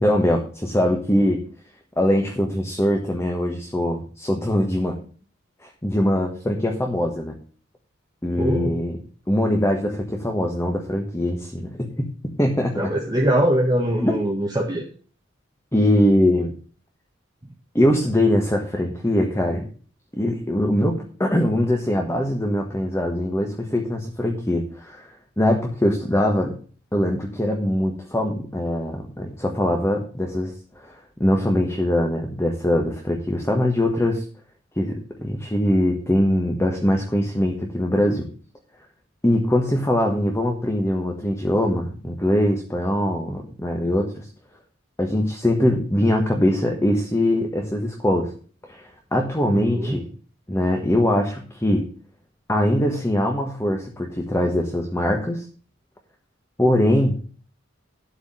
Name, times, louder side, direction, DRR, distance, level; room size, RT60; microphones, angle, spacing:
voice 1, 0.0-1.4 2.0-4.9 5.6-7.3 8.2-9.0 9.3-12.1 12.4-12.9 14.0-14.2 15.7-16.5 17.7-19.7 20.1-25.1 25.4-26.5 26.9-30.5 30.8-34.2 34.8-38.3 39.2-44.3 45.0-48.3 48.7-50.1 50.5-51.9 52.5-55.4 56.6-57.2, left 1 dB, 15° left, 1 dB, 1.5 m, -22 dB
voice 2, 8.3-8.7 12.8-14.8 49.5-50.0, right 1 dB, 20° right, -2 dB, 1.6 m, -22 dB
12.0 x 4.9 x 7.5 m, 0.41 s
head